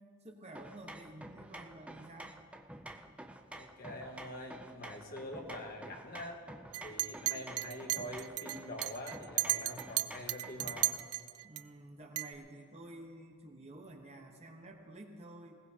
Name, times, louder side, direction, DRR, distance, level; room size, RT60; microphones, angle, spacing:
voice 1, 0.2-2.4 11.4-15.6, right 1 dB, 30° right, 2 dB, 1.1 m, -51 dB
sound 1, 0.5-11.1, right 1 dB, 5° right, 0.4 m, -50 dB
voice 2, 3.5-6.4 6.8-10.9, left 1 dB, 40° left, 1 dB, 1.5 m, -45 dB
Chink clink, 6.7-11.6 12.2-12.3, right 15 dB, 75° right, 0.4 m, -35 dB
20.0 x 17.5 x 2.9 m, 2.2 s
head